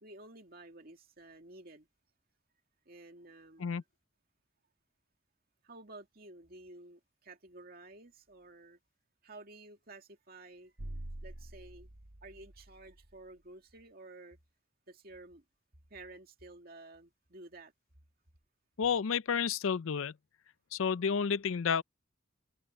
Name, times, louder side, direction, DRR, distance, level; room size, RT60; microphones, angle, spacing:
voice 1, 0.0-1.9 2.9-3.8 5.6-8.8 9.2-10.7 11.2-11.9 12.2-14.4 14.9-15.4 15.9-17.7, right 2 dB, 50° right, 2.3 m, -52 dB
sound 1, 10.8-13.2, right 1 dB, 85° right, 1.6 m, -46 dB
voice 2, 18.8-20.1 20.7-21.8, left 6 dB, 90° left, 0.5 m, -30 dB
open air
head